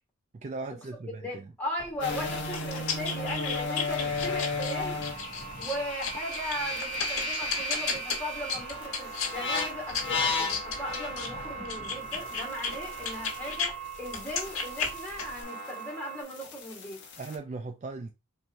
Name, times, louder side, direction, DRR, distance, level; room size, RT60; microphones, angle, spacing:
voice 1, 0.3-1.5 17.2-18.1, right 3 dB, 35° right, 0.3 m, -38 dB
voice 2, 1.1-5.0 5.6-17.0, left 1 dB, 5° left, 1.7 m, -38 dB
sound 1, 1.8-13.7 14.1-15.4, left 5 dB, 80° left, 1.3 m, -35 dB
Electrical Noise Recorded With Telephone Pick-up, 2.0-13.6 13.8-17.4, left 2 dB, 55° left, 1.2 m, -35 dB
sound 2, 5.0-16.2, right 6 dB, 75° right, 1.5 m, -43 dB
4.4 x 3.2 x 2.6 m
head